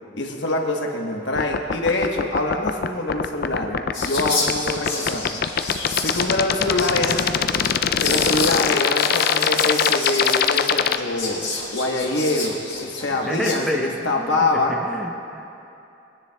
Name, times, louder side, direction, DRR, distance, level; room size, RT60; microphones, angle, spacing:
voice 1, 0.1-5.4 6.0-7.5 8.0-14.8, left 2 dB, 65° left, 1 dB, 1.2 m, -25 dB
sound 1, 1.4-11.0, left 8 dB, 50° left, 0.4 m, -21 dB
Whispering, 3.9-13.5, left 3 dB, 25° left, 1.9 m, -30 dB
voice 2, 13.3-13.9 14.2-14.4 14.9-15.5, left 1 dB, ahead, -1 dB, 0.7 m, -28 dB
22.5 x 9.9 x 2.3 m, 2.7 s
head